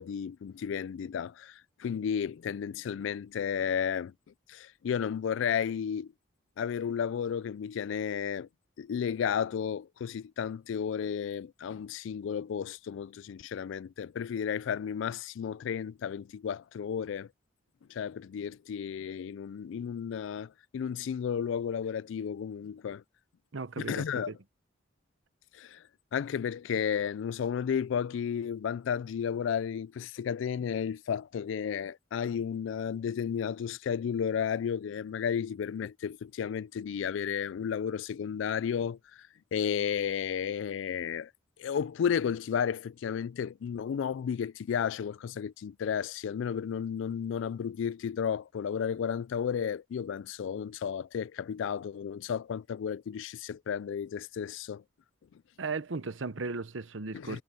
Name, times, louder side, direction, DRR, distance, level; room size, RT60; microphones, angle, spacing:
voice 1, 0.0-4.1 4.5-6.1 6.6-8.5 8.8-17.3 17.9-23.0 23.8-24.3 25.5-25.8 26.1-41.3 41.6-54.8 57.1-57.4, left 7 dB, 70° left, 0.3 m, -33 dB
voice 2, 23.5-24.4 55.6-57.4, right 4 dB, 75° right, 0.9 m, -36 dB
head